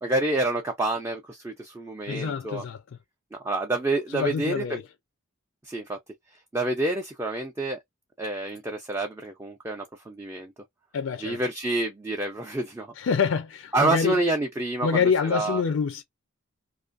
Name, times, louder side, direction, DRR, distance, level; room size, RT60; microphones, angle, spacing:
voice 1, 0.0-2.6 3.4-4.8 5.6-6.0 6.5-7.8 8.2-10.5 11.2-12.9 13.7-15.0 15.3-15.6, right 2 dB, 10° right, 0.3 m, -28 dB
voice 2, 2.1-2.8 4.1-4.8 10.9-11.4 13.0-14.2 14.8-16.0, left 6 dB, 65° left, 0.3 m, -26 dB
2.5 x 2.4 x 2.4 m
head